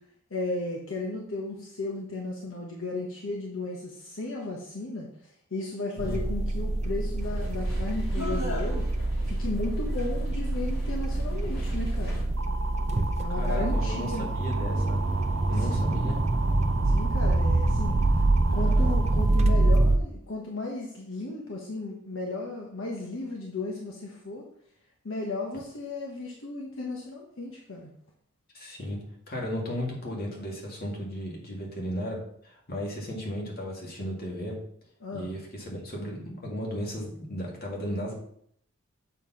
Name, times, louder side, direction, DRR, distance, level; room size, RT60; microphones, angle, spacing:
voice 1, 0.3-5.1 5.5-8.9 9.2-12.2 13.2-14.3 15.6-16.1 16.8-18.0 18.5-24.4 25.0-27.9 35.0-35.3, left 2 dB, 75° left, -1 dB, 1.2 m, -35 dB
sound 1, 6.0-20.0, right 2 dB, 35° right, 0.5 m, -26 dB
sound 2, 7.2-12.2, equal, 90° left, 2.8 m, -38 dB
sound 3, 12.4-19.7, right 4 dB, 70° right, 0.7 m, -38 dB
voice 2, 13.3-15.0 15.5-16.2 18.6-19.0 28.5-29.0 29.3-34.5 35.1-38.1, equal, 50° left, -1 dB, 2.2 m, -35 dB
7.0 x 4.4 x 5.7 m, 0.68 s
head